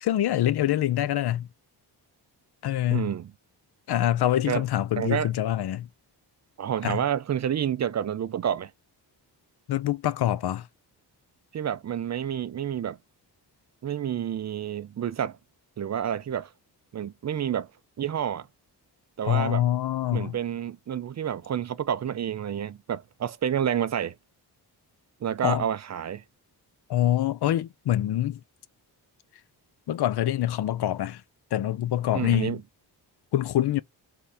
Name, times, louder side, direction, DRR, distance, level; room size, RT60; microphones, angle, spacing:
voice 1, 0.0-1.5 2.6-3.1 3.9-5.9 6.8-7.0 9.7-10.7 19.2-20.4 25.4-25.6 26.9-28.4 29.9-31.2 31.5-32.6 33.3-33.8, left 12 dB, 65° left, 0.6 m, -25 dB
voice 2, 2.9-3.3 4.5-4.6 5.0-5.3 6.6-8.7 11.5-13.0 13.8-15.4 15.8-16.5 16.9-17.7 18.0-18.5 19.2-19.6 20.1-24.1 25.2-26.2 32.1-32.6, right 9 dB, 45° right, 0.4 m, -29 dB
3.7 x 3.4 x 4.1 m
wide cardioid pair, 125°, 41 cm